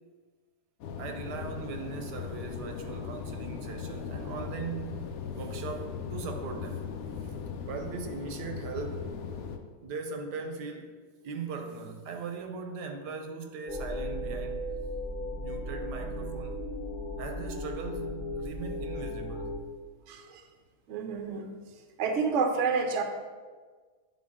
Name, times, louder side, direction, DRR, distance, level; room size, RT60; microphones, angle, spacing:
sound 1, 0.8-9.6, left 6 dB, 70° left, 0.9 m, -38 dB
voice 1, 1.0-6.9 7.2-7.3 7.6-9.4 9.8-10.9 11.2-14.7 15.4-16.6 17.2-19.7, right 4 dB, 85° right, 5 dB, 1.3 m, -39 dB
sound 2, 13.7-19.6, left 1 dB, 45° left, 0.6 m, -36 dB
voice 2, 20.1-20.4 20.9-21.5 22.0-23.0, right 5 dB, 60° right, 4 dB, 0.8 m, -29 dB
8.8 x 3.8 x 3.5 m, 1.5 s
omnidirectional pair, 1.8 m